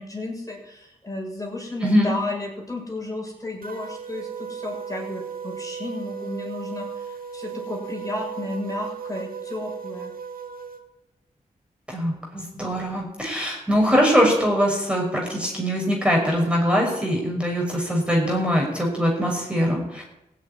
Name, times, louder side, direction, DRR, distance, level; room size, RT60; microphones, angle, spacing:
voice 1, 0.0-10.1, left 2 dB, 20° left, -2 dB, 6.7 m, -33 dB
voice 2, 1.8-2.1 11.9-20.0, equal, 5° right, -1 dB, 5.8 m, -22 dB
sound 1, 3.6-10.8, right 7 dB, 60° right, 2.2 m, -36 dB
16.0 x 7.2 x 9.6 m, 0.92 s
cardioid pair, 45°, 17 cm